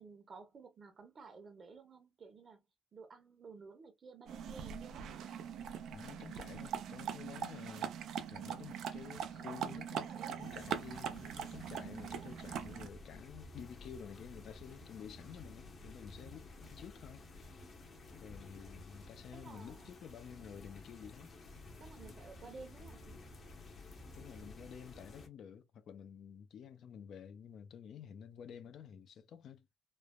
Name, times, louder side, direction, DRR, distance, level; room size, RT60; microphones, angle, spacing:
voice 1, 0.0-2.6 2.9-5.0 19.3-19.9 21.8-23.0, right 4 dB, 50° right, 0.8 m, -54 dB
sound 1, 4.3-12.9, right 8 dB, 80° right, 0.4 m, -42 dB
voice 2, 5.9-7.9 8.3-17.7 18.2-21.4 24.2-29.8, left 8 dB, 70° left, 0.4 m, -51 dB
sound 2, 10.4-25.3, left 2 dB, 45° left, 0.8 m, -53 dB
3.2 x 2.0 x 2.2 m
cardioid pair, 90°, 0 cm